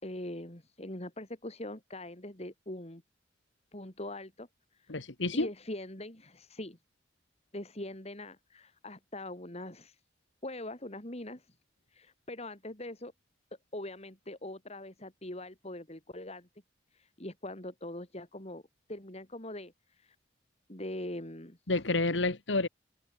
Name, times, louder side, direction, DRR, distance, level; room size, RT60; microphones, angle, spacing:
voice 1, 0.0-3.0 3.7-4.5 4.7-5.1 5.3-6.8 7.5-10.0 10.4-11.6 11.9-13.1 13.7-16.5 16.9-18.6 18.9-20.2 20.7-21.6, left 1 dB, 35° left, 4.1 m, -42 dB
voice 2, 4.9-5.5 21.7-22.7, left 2 dB, 90° left, 1.9 m, -29 dB
open air
head